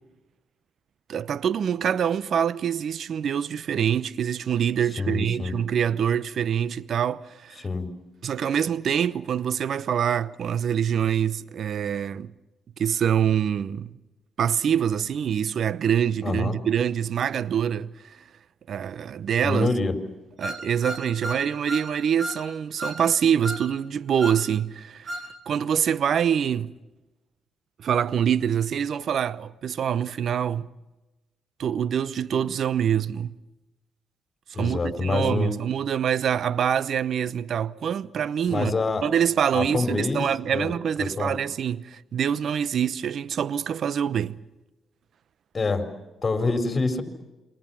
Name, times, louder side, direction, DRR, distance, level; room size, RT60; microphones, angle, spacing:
voice 1, 1.1-7.7 8.2-12.3 12.8-14.0 14.4-18.2 18.7-19.7 20.4-25.1 25.5-26.7 27.8-30.7 31.6-33.3 34.5-38.7 39.0-44.4, right 8 dB, 65° right, 0.8 m, -25 dB
voice 2, 5.0-5.5 7.6-7.9 16.2-16.6 19.4-20.0 34.5-35.5 38.5-39.0 39.5-40.3 40.5-40.7 41.0-41.3 45.5-45.9 46.2-47.0, left 3 dB, 35° left, 4.6 m, -26 dB
sound 1, 20.4-21.9 22.2-22.4 22.8-23.0 23.4-23.7 24.2-24.4 25.1-25.3, equal, 45° right, 3.2 m, -33 dB
28.0 x 24.5 x 5.9 m
supercardioid pair, 55°, 0 cm